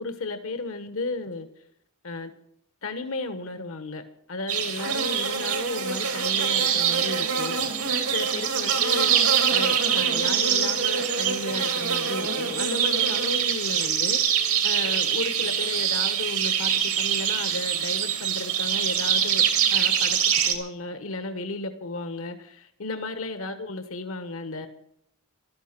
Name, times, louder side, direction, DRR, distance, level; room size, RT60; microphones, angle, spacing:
voice 1, 0.0-1.5 2.0-2.3 2.8-4.0 4.3-19.4 19.7-20.2 20.5-24.7, left 2 dB, 70° left, 8 dB, 1.2 m, -34 dB
sound 1, 4.5-20.5, right 8 dB, 90° right, 2.7 m, -24 dB
14.0 x 12.5 x 5.9 m, 0.72 s
head